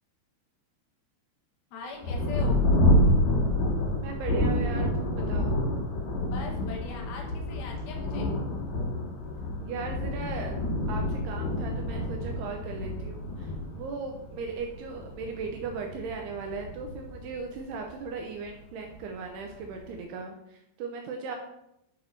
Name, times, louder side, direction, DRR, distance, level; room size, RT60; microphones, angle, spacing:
voice 1, 1.7-2.6 6.3-8.3, left 4 dB, 80° left, 0 dB, 3.8 m, -41 dB
Thunder, 2.0-18.1 18.8-18.9 19.5-19.9, left 1 dB, 55° left, 2.3 m, -28 dB
voice 2, 4.0-5.6 9.6-10.6 10.9-21.4, right 4 dB, 85° right, 2 dB, 2.3 m, -37 dB
10.5 x 6.2 x 2.7 m, 0.82 s
omnidirectional pair, 5.5 m